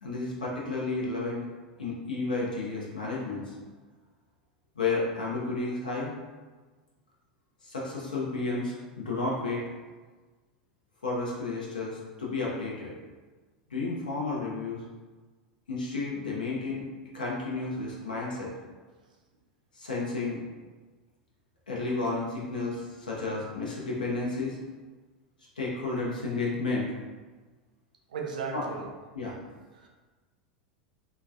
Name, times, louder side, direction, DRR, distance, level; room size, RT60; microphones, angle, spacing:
voice 1, 0.0-1.5 1.8-3.6 4.8-6.1 7.6-9.6 11.0-12.9 13.7-14.8 15.7-16.8 17.1-18.5 19.7-20.4 21.7-24.6 25.6-26.9 28.5-28.6 29.1-29.3, left 3 dB, 75° left, -4 dB, 0.5 m, -32 dB
voice 2, 28.1-28.9 29.7-29.9, right 5 dB, 70° right, 0 dB, 0.4 m, -35 dB
3.2 x 2.1 x 2.2 m, 1.3 s
figure-of-eight pair, 85°, 5 cm